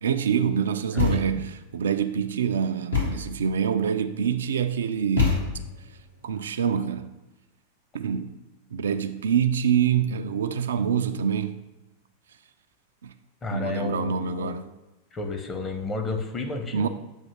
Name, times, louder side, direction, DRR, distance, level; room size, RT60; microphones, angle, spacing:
voice 1, 0.0-5.5 6.2-7.1 7.9-8.3 8.7-11.6 13.0-13.1 13.5-14.6 16.7-16.9, right 7 dB, 65° right, 0.3 m, -26 dB
voice 2, 0.9-1.4 13.4-14.5 15.1-16.9, left 2 dB, 20° left, 0.8 m, -32 dB
Thump thud, 1.0-1.5 2.9-3.4 5.2-5.8, left 5 dB, 80° left, 2.0 m, -25 dB
7.2 x 2.7 x 5.5 m
figure-of-eight pair, 90°, 0 cm